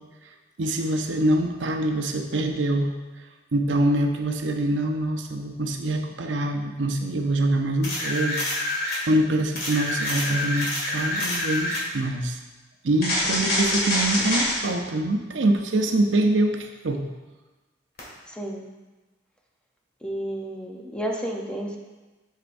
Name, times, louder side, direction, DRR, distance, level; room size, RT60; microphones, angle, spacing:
voice 1, 0.6-2.9 3.5-8.5 9.1-12.4 12.8-17.0, right 1 dB, 80° right, 4 dB, 0.7 m, -24 dB
sound 1, 7.8-9.0 9.6-11.9 13.0-14.6 18.0-18.1, left 1 dB, 55° left, 2.0 m, -26 dB
voice 2, 18.3-18.7 20.0-21.8, right 1 dB, 5° left, 0 dB, 0.7 m, -31 dB
7.9 x 6.5 x 2.6 m, 1.2 s
head